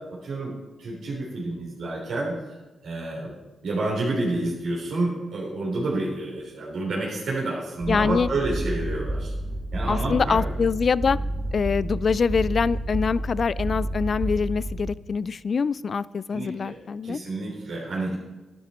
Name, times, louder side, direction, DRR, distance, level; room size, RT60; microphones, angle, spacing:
voice 1, 0.2-2.3 2.8-3.3 3.6-9.3 9.7-10.4 16.3-16.8 17.0-18.2, right 2 dB, 80° right, -4 dB, 3.5 m, -29 dB
sound 1, 7.8-14.9, right 1 dB, 50° right, 3.6 m, -30 dB
voice 2, 7.9-8.3 9.9-11.2 11.5-17.2, left 5 dB, 50° left, 19 dB, 0.3 m, -24 dB
12.0 x 11.5 x 4.4 m, 1.1 s
cardioid pair, 100°, 0 cm